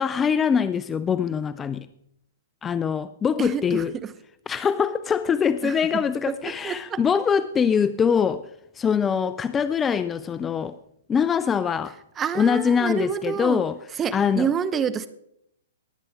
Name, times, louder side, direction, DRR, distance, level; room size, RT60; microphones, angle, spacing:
voice 1, 0.0-1.9 2.6-3.9 4.5-8.5 8.8-10.8 11.1-11.9 12.3-13.8 14.1-14.5, left 7 dB, 15° left, 0.4 m, -23 dB
voice 2, 3.4-4.1 5.6-7.0 12.2-13.6 13.9-15.1, right 7 dB, 20° right, 0.7 m, -28 dB
18.5 x 8.7 x 3.5 m
figure-of-eight pair, 120°, 0 cm